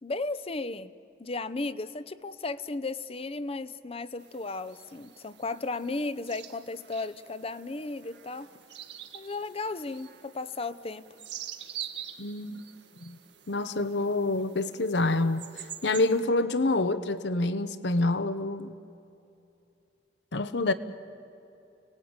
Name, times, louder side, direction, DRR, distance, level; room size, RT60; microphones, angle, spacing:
voice 1, 0.0-0.9 1.2-8.5 9.1-11.1 20.7-20.8, left 3 dB, 35° left, 14 dB, 0.7 m, -35 dB
sound 1, 4.2-16.2, right 10 dB, 85° right, 1.7 m, -46 dB
voice 2, 12.2-12.6 13.0-13.2 13.5-15.5 15.8-18.7 20.3-20.7, left 2 dB, 75° left, 12 dB, 0.9 m, -27 dB
30.0 x 19.0 x 8.8 m, 2.8 s
head